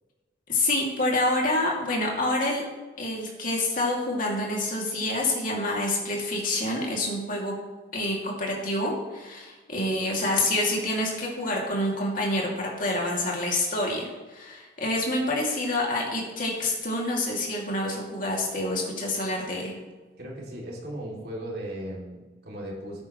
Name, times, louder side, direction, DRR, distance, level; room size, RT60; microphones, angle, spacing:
voice 1, 0.5-2.6 3.0-7.5 7.9-19.7, left 1 dB, 50° left, -2 dB, 2.5 m, -27 dB
voice 2, 20.2-23.0, right 1 dB, 60° right, -3 dB, 2.8 m, -37 dB
13.5 x 9.7 x 3.1 m, 1.3 s
head